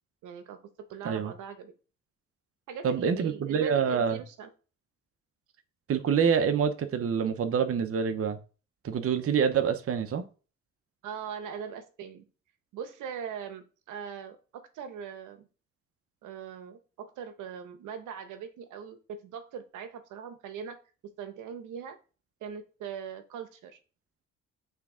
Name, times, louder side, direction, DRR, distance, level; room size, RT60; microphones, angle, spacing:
voice 1, 0.2-1.7 2.7-4.5 11.0-12.3 12.7-15.5 16.2-20.8 21.2-22.0 22.4-23.8, right 7 dB, 85° right, 0.9 m, -41 dB
voice 2, 2.8-4.2 5.9-8.4 8.8-10.2, right 7 dB, 50° right, 0.8 m, -26 dB
8.2 x 3.5 x 3.7 m
cardioid pair, 90°, 30 cm